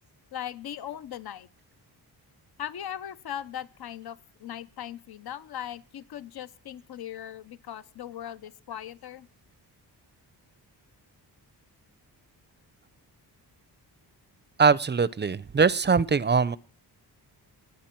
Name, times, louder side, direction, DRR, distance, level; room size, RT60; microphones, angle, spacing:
voice 1, 0.3-1.5 2.6-9.3, left 10 dB, 60° left, 15 dB, 0.9 m, -39 dB
voice 2, 14.6-16.6, right 5 dB, 25° right, 20 dB, 0.6 m, -22 dB
19.0 x 8.1 x 4.5 m, 0.38 s
cardioid pair, 75°, 41 cm